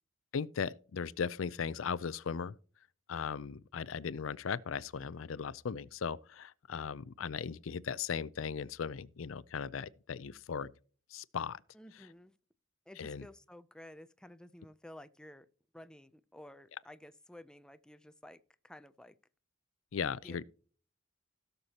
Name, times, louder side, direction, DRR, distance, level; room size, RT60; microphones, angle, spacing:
voice 1, 0.3-2.6 3.1-10.7 11.1-11.6 13.0-13.3 19.9-20.4, left 6 dB, 85° left, 0.5 m, -37 dB
voice 2, 11.7-12.3 12.9-15.5 15.7-19.2 20.2-20.4, left 1 dB, 5° left, 0.4 m, -53 dB
17.0 x 6.7 x 2.9 m
head